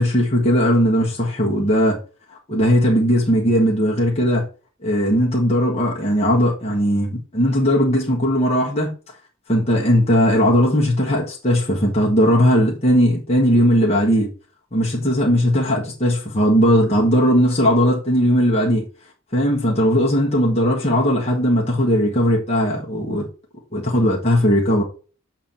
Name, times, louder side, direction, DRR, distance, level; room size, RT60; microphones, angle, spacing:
voice 1, 0.0-2.0 2.5-4.4 4.8-8.9 9.5-14.3 14.7-18.8 19.3-23.3 23.7-24.8, equal, 30° left, 1.5 m, -18 dB
8.1 x 3.0 x 5.3 m
head